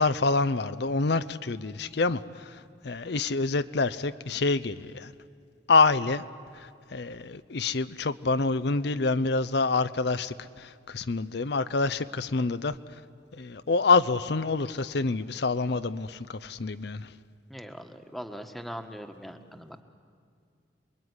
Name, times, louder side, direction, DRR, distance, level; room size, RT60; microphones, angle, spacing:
voice 1, 0.0-5.1 5.7-6.2 6.5-12.8 13.3-17.1, left 3 dB, 65° left, 12 dB, 0.6 m, -27 dB
voice 2, 17.5-19.8, equal, ahead, 6 dB, 1.3 m, -41 dB
28.5 x 21.5 x 9.7 m, 2.3 s
head